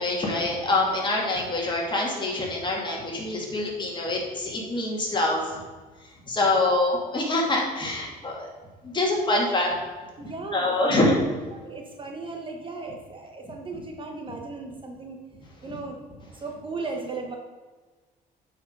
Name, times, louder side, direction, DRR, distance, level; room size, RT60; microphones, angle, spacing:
voice 1, 0.0-5.6 6.3-8.5 8.8-9.7 10.2-11.1 15.7-15.8, left 2 dB, 30° left, -2 dB, 2.6 m, -25 dB
voice 2, 10.2-11.0 11.5-15.2 15.6-16.0 16.3-17.4, right 3 dB, 30° right, 2 dB, 1.1 m, -36 dB
8.8 x 5.0 x 5.3 m, 1.4 s
cardioid pair, 110°, 17 cm